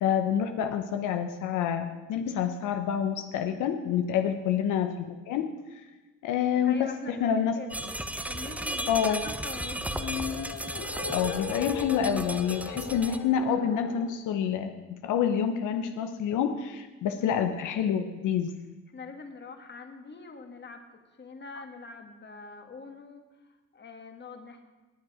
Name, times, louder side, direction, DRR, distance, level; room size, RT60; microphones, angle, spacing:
voice 1, 0.0-5.8 6.2-7.6 8.9-9.2 11.1-18.5, left 8 dB, 90° left, 8 dB, 0.9 m, -28 dB
voice 2, 6.6-9.8 17.1-17.4 18.9-24.6, left 3 dB, 35° left, 5 dB, 1.8 m, -44 dB
sound 1, 7.7-13.2, right 1 dB, 5° right, 0.8 m, -35 dB
sound 2, 9.8-14.1, left 9 dB, 70° left, 1.1 m, -38 dB
18.5 x 8.1 x 4.9 m, 1.2 s
cardioid pair, 90°, 30 cm